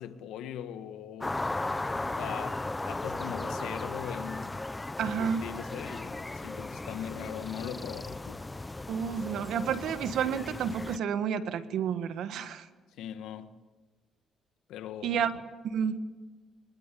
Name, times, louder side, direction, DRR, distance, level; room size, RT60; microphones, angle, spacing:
voice 1, 0.0-1.4 2.2-4.6 5.2-8.4 13.0-13.5 14.7-15.2, left 9 dB, 90° left, 1.5 m, -40 dB
sound 1, 1.2-11.0, left 2 dB, 15° left, 0.7 m, -36 dB
voice 2, 5.0-5.5 8.9-12.6 15.0-15.3 15.6-16.0, right 7 dB, 75° right, 1.6 m, -30 dB
25.0 x 22.0 x 8.5 m
cardioid pair, 90°, 0 cm